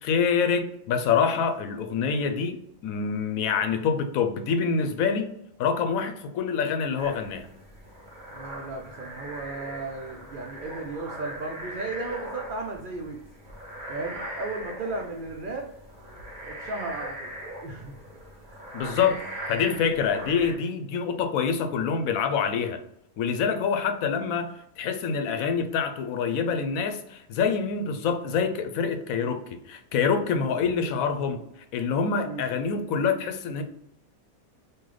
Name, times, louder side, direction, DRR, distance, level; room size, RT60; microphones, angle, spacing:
voice 1, 0.0-2.6 2.8-5.3 5.6-7.5 18.7-19.2 19.5-22.8 23.2-31.4 31.7-33.6, left 6 dB, 75° left, 7 dB, 1.0 m, -26 dB
sound 1, 7.0-20.5, right 1 dB, 35° right, 1.2 m, -40 dB
voice 2, 8.3-13.2 13.9-15.7 16.4-17.3 17.6-17.9 18.5-19.2 32.2-32.4, right 3 dB, 85° right, 1 dB, 0.4 m, -35 dB
3.1 x 2.6 x 3.8 m, 0.77 s
omnidirectional pair, 1.5 m